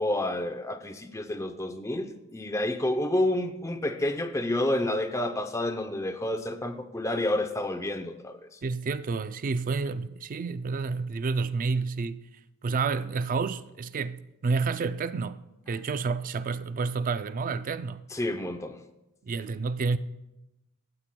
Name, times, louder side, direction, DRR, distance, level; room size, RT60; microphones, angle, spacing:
voice 1, 0.0-8.4 18.1-18.7, left 1 dB, 15° left, 0.5 m, -29 dB
voice 2, 8.6-12.3 12.6-18.0 19.2-20.0, right 4 dB, 35° right, 0.3 m, -30 dB
16.0 x 8.8 x 2.2 m
head